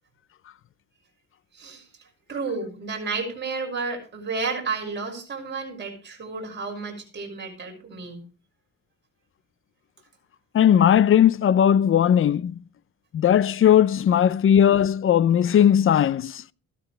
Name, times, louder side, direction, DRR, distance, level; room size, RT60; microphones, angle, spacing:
voice 1, 1.5-1.8 2.3-8.2, right 4 dB, 35° right, 6.3 m, -31 dB
voice 2, 10.5-12.6 13.1-16.4, left 9 dB, 45° left, 0.6 m, -18 dB
14.5 x 13.0 x 3.3 m
cardioid pair, 90°, 30 cm